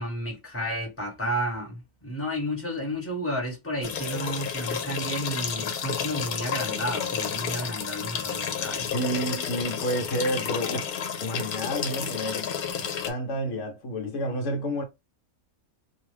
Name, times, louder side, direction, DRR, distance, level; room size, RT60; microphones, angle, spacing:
voice 1, 0.0-8.9, equal, 10° left, 1.1 m, -32 dB
sound 1, 3.8-13.1, left 7 dB, 85° left, 1.1 m, -31 dB
voice 2, 8.8-12.5 13.1-14.8, equal, 60° left, 1.1 m, -30 dB
2.7 x 2.3 x 3.1 m
omnidirectional pair, 1.5 m